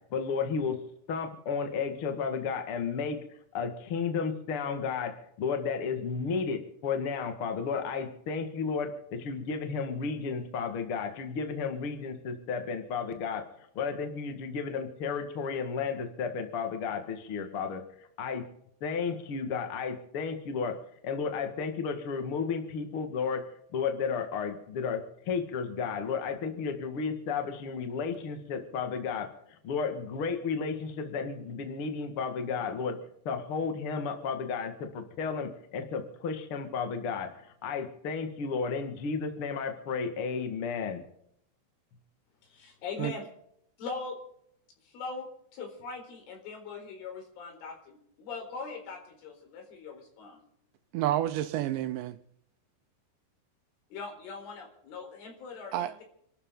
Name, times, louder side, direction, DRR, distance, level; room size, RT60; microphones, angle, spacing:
voice 1, 0.1-0.8 1.1-3.2 3.5-18.4 18.8-29.3 29.6-33.0 33.2-41.0, left 5 dB, 60° left, 1.4 m, -33 dB
voice 2, 42.4-43.3 43.8-44.2 44.8-50.4 53.9-56.0, left 4 dB, 75° left, 6.6 m, -41 dB
voice 3, 50.9-52.2 55.7-56.0, right 13 dB, 80° right, 2.7 m, -29 dB
27.5 x 13.0 x 3.9 m
omnidirectional pair, 5.6 m